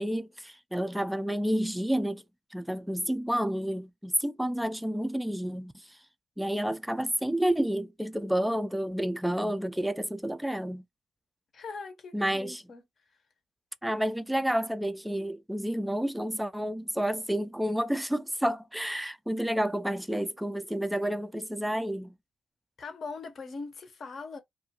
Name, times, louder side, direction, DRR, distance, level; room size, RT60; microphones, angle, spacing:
voice 1, 0.0-2.2 2.5-6.0 6.4-10.8 12.1-12.6 13.8-22.1, equal, 5° right, 0.3 m, -30 dB
voice 2, 11.5-12.8 22.8-24.4, left 4 dB, 50° left, 0.7 m, -41 dB
2.4 x 2.2 x 2.7 m
cardioid pair, 90°, 0 cm